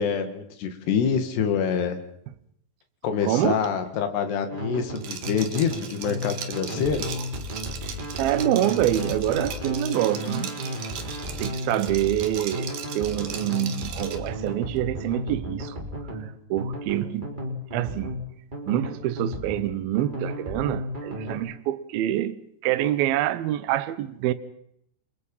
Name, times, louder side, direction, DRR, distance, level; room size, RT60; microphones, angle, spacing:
voice 1, 0.0-2.0 3.0-7.1, left 7 dB, 65° left, 4.0 m, -26 dB
voice 2, 3.2-3.6 8.2-10.6 11.4-15.8 16.5-17.3 17.7-18.2 18.7-22.4 22.6-24.3, right 13 dB, 75° right, 2.3 m, -26 dB
sound 1, 4.5-21.4, equal, 10° right, 3.0 m, -34 dB
Liquid, 5.0-14.3, right 8 dB, 60° right, 3.2 m, -38 dB
29.0 x 22.0 x 5.6 m
omnidirectional pair, 5.6 m